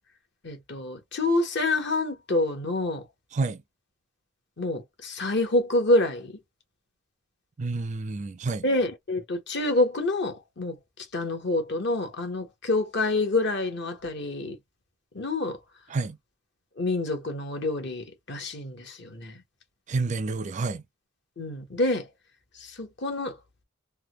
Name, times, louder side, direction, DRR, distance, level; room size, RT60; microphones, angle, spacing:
voice 1, 0.4-3.0 4.6-6.3 8.6-10.8 11.1-14.6 15.1-15.6 16.8-19.3 21.4-22.1 22.6-23.3, left 2 dB, 60° left, 1.0 m, -27 dB
voice 2, 7.6-8.6 15.9-16.2 19.9-20.8, right 3 dB, 35° right, 0.4 m, -29 dB
3.3 x 2.2 x 3.0 m
head